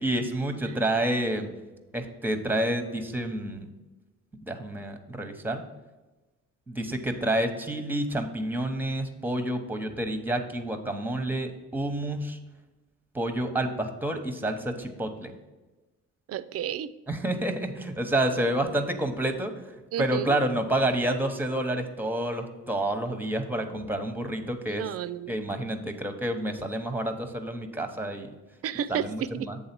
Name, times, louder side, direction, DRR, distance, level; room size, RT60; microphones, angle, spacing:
voice 1, 0.0-1.5 1.9-3.7 4.4-5.6 6.7-12.4 13.1-15.3 17.1-19.5 20.0-24.8 25.3-28.3 28.9-29.6, right 1 dB, 5° right, 7 dB, 0.8 m, -29 dB
voice 2, 16.3-16.9 19.9-20.4 24.7-25.4 28.6-29.5, right 9 dB, 55° right, 15 dB, 0.4 m, -32 dB
7.9 x 3.7 x 5.8 m, 1.1 s
cardioid pair, 90°, 30 cm